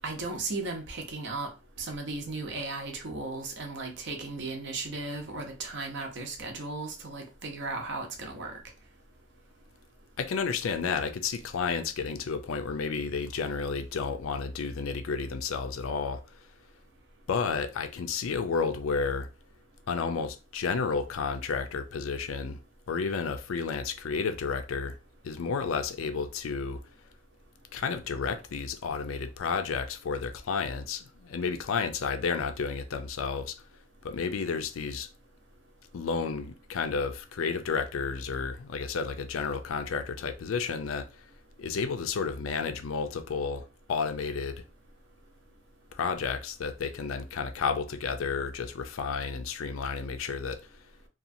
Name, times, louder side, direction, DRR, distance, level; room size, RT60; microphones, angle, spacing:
voice 1, 0.0-1.5 1.8-8.5, right 3 dB, 60° right, 0.7 m, -36 dB
voice 2, 10.2-16.2 17.3-19.3 19.9-22.6 22.9-24.9 25.2-26.8 27.7-33.6 34.0-35.1 35.9-41.1 41.6-44.6 45.9-50.6, left 5 dB, 70° left, 0.4 m, -31 dB
2.8 x 2.3 x 2.5 m
head